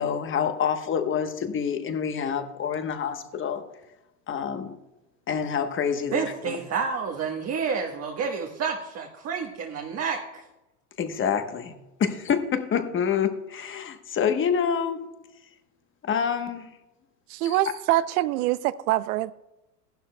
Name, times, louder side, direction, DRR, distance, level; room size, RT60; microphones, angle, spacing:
voice 1, 0.0-3.6 4.3-4.7 5.3-6.6 11.0-11.7 12.0-15.0 16.0-16.7 17.4-17.6, left 7 dB, 25° left, 1.1 m, -27 dB
voice 2, 6.1-10.4, right 5 dB, 30° right, 1.3 m, -29 dB
voice 3, 17.3-19.3, right 15 dB, 65° right, 0.7 m, -24 dB
15.0 x 11.5 x 2.2 m
hypercardioid pair, 105°, 48 cm